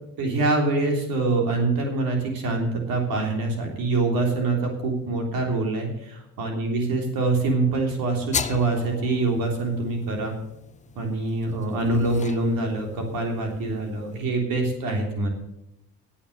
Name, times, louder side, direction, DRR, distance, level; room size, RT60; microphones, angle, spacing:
voice 1, 0.2-10.3 11.0-15.3, right 3 dB, 70° right, 2 dB, 3.4 m, -25 dB
sound 1, 8.3-14.2, left 6 dB, 20° left, 0.5 m, -37 dB
8.9 x 8.7 x 8.0 m, 0.85 s
cardioid pair, 100°, 36 cm